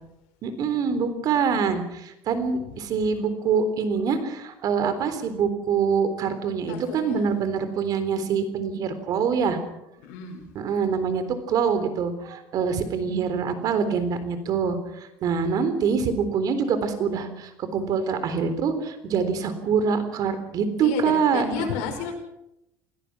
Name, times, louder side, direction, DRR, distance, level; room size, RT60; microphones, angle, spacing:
voice 1, 0.4-9.6 10.6-14.8 15.2-21.5, right 6 dB, 50° right, 11 dB, 3.8 m, -25 dB
voice 2, 6.7-7.3 10.0-10.4 20.8-22.2, left 6 dB, 85° left, 4 dB, 5.2 m, -32 dB
27.5 x 17.0 x 6.2 m, 0.86 s
supercardioid pair, 115°, 8 cm